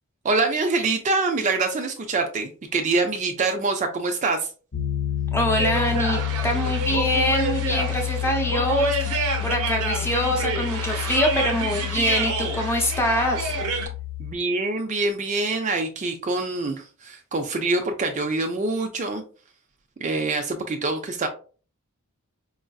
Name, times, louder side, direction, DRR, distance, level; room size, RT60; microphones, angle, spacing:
voice 1, 0.2-4.5 14.2-19.2 20.0-21.3, right 3 dB, 35° right, 0.4 m, -25 dB
Piano, 4.7-14.3, left 13 dB, 65° left, 0.7 m, -29 dB
voice 2, 5.3-13.5, equal, 10° left, 0.6 m, -24 dB
sound 1, 5.6-13.9, right 3 dB, 75° right, 0.7 m, -28 dB
4.7 x 2.5 x 2.3 m
head